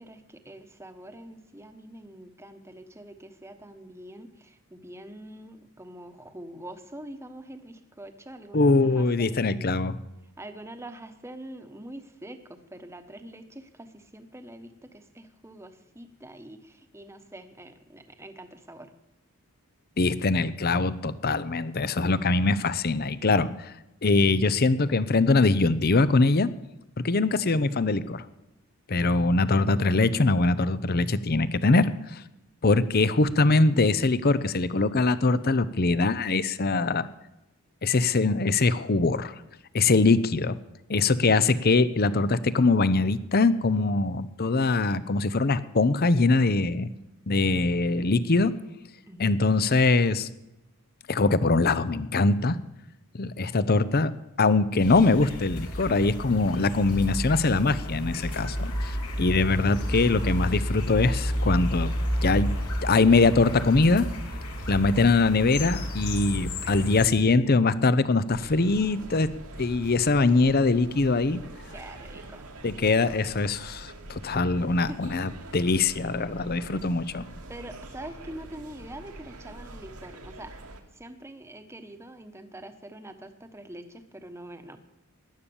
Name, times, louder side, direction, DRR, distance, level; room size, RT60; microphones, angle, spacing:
voice 1, 0.0-9.7 10.4-18.9 29.0-29.3 49.1-49.4 59.8-60.0 71.7-72.5 74.6-75.0 75.4-75.8 76.7-76.9 77.5-80.5 80.9-84.8, right 1 dB, 10° right, 8 dB, 1.2 m, -44 dB
voice 2, 8.5-10.0 20.0-23.7 24.0-26.5 27.0-28.2 28.9-32.2 32.6-37.1 37.8-39.3 39.7-40.6 40.9-46.9 47.3-48.5 49.2-50.3 51.1-52.6 53.1-54.1 54.4-61.9 62.2-62.5 62.8-64.1 64.7-69.3 69.6-71.4 72.6-77.2, left 3 dB, 45° left, 16 dB, 0.7 m, -23 dB
sound 1, 54.8-67.1, equal, 85° left, 3.2 m, -31 dB
sound 2, 68.3-80.8, right 2 dB, 85° right, 2.3 m, -44 dB
17.0 x 11.5 x 7.1 m, 0.93 s
head